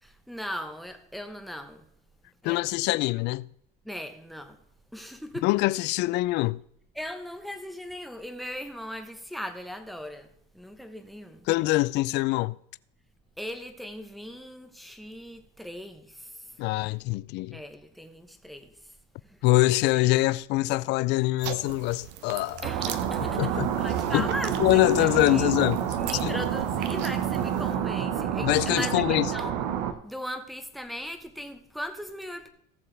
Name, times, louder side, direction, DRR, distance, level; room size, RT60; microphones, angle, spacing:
voice 1, 0.0-1.9 2.4-2.6 3.8-4.6 4.9-5.5 6.9-11.5 13.4-16.6 17.5-18.9 19.2-19.4 20.0-20.1 22.6-25.5 26.0-29.5 30.0-32.5, equal, ahead, 1.0 m, -38 dB
voice 2, 2.4-3.5 5.4-6.6 11.5-12.6 16.6-17.6 19.4-22.7 23.4-23.7 24.1-24.3 24.6-25.8 26.2-26.4 28.4-29.3, left 19 dB, 55° left, 0.4 m, -24 dB
sound 1, 21.4-27.7, right 10 dB, 60° right, 0.9 m, -40 dB
sound 2, 22.6-29.9, right 9 dB, 80° right, 1.2 m, -28 dB
18.0 x 6.9 x 3.4 m
cardioid pair, 150°, 21 cm